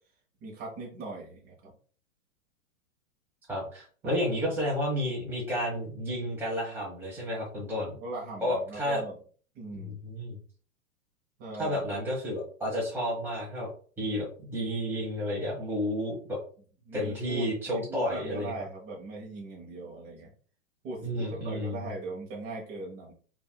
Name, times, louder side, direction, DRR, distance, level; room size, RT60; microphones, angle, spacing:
voice 1, 0.4-1.7 4.0-4.1 7.9-9.2 9.5-10.0 11.4-11.8 16.8-20.3 20.8-23.1, right 3 dB, 30° right, -2 dB, 1.2 m, -40 dB
voice 2, 3.5-7.9 8.4-9.0 9.7-10.4 11.6-13.7 14.0-16.4 16.9-18.5 21.0-21.8, equal, 5° right, -5 dB, 1.2 m, -31 dB
5.3 x 2.7 x 2.2 m, 0.43 s
hypercardioid pair, 120°, 42 cm